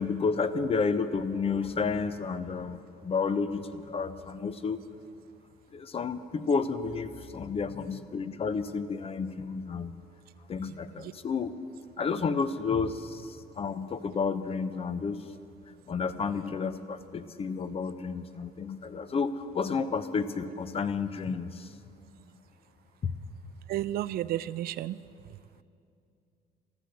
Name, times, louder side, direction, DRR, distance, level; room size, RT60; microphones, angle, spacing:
voice 1, 0.0-4.8 5.7-9.9 10.5-11.6 12.0-15.2 15.9-21.7 23.0-23.1, left 5 dB, 35° left, 12 dB, 0.8 m, -31 dB
voice 2, 23.7-25.0, right 13 dB, 65° right, 17 dB, 0.4 m, -32 dB
14.0 x 14.0 x 6.8 m, 2.5 s
cardioid pair, 110°, 17 cm